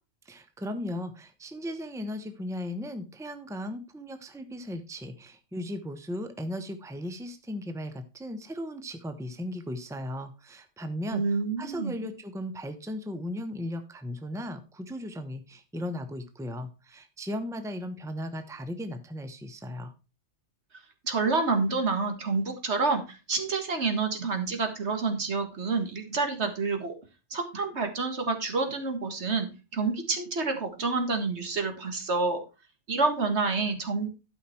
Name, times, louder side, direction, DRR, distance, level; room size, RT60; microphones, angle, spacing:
voice 1, 0.2-19.9, left 1 dB, 5° right, 9 dB, 0.9 m, -37 dB
voice 2, 11.1-11.9 21.0-26.9 27.3-32.4 32.9-34.1, right 4 dB, 70° right, 5 dB, 2.0 m, -28 dB
12.0 x 5.8 x 4.4 m, 0.29 s
omnidirectional pair, 1.2 m